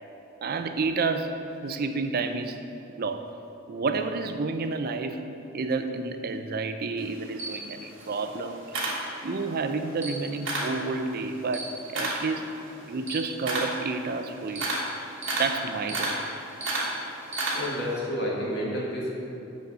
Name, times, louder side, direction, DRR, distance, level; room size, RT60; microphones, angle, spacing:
voice 1, 0.4-2.6 3.0-3.3 3.7-5.2 5.5-8.7 9.2-12.5 12.9-14.7 15.4-16.3, right 3 dB, 50° right, 8 dB, 0.5 m, -30 dB
Camera, 7.0-9.6 9.9-10.8 11.2-17.9, right 2 dB, 65° right, 1.4 m, -32 dB
voice 2, 17.2-19.1, equal, 55° left, -4 dB, 1.7 m, -31 dB
7.0 x 6.3 x 5.4 m, 2.8 s
head